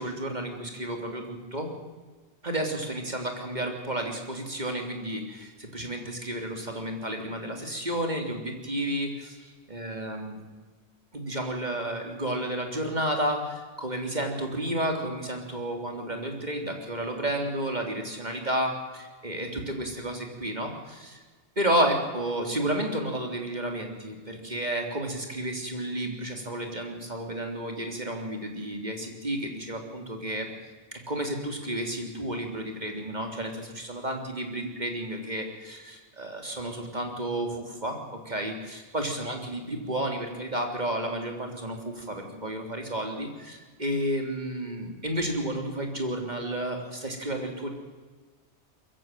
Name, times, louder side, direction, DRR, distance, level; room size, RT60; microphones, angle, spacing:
voice 1, 0.0-1.7 2.4-10.4 11.1-21.2 21.6-30.5 30.9-47.7, right 1 dB, 40° right, 3 dB, 3.5 m, -31 dB
23.0 x 15.0 x 9.2 m, 1.4 s
omnidirectional pair, 1.1 m